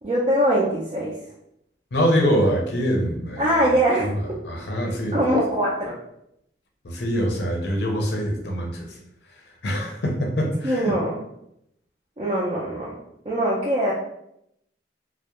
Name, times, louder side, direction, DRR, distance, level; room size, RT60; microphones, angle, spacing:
voice 1, 0.0-1.1 3.4-4.4 5.1-6.0 10.6-11.2 12.2-13.0 13.3-13.9, right 1 dB, 30° right, -5 dB, 0.4 m, -22 dB
voice 2, 1.9-3.5 4.4-5.3 6.8-8.9 9.6-10.9, equal, 60° left, 1 dB, 0.5 m, -24 dB
2.3 x 2.0 x 2.8 m, 0.77 s
head